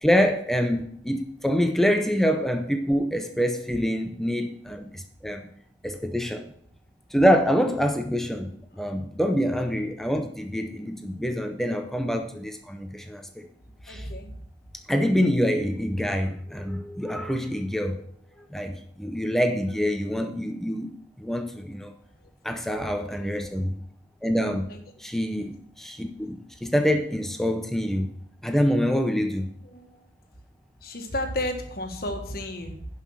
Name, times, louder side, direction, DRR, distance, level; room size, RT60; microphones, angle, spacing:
voice 1, 0.0-5.5 5.8-6.5 7.1-13.5 13.9-14.0 14.9-18.0 18.5-21.9 22.4-23.8 24.2-24.7 25.0-28.1 28.4-29.5, equal, ahead, 5 dB, 0.6 m, -26 dB
voice 2, 13.9-14.3 18.3-18.4 22.2-22.3 24.7-24.8 29.6-30.1 30.8-32.9, left 1 dB, 50° left, 4 dB, 1.6 m, -33 dB
11.0 x 5.6 x 5.6 m, 0.66 s
head